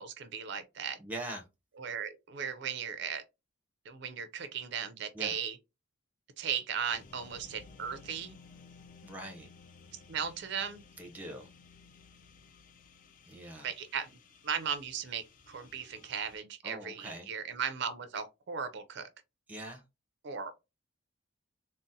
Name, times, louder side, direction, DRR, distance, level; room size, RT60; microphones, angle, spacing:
voice 1, 0.0-1.0 1.8-3.2 3.9-5.6 6.4-8.4 10.1-10.8 13.6-14.2 14.4-19.1 20.2-20.5, right 7 dB, 55° right, 0.4 m, -37 dB
voice 2, 1.0-1.4 5.1-5.3 9.0-9.5 11.0-11.5 13.3-13.7 16.6-17.3 19.5-19.8, right 1 dB, 10° right, 0.6 m, -42 dB
sound 1, 6.9-16.4, left 4 dB, 40° left, 0.3 m, -57 dB
3.8 x 2.0 x 2.6 m
head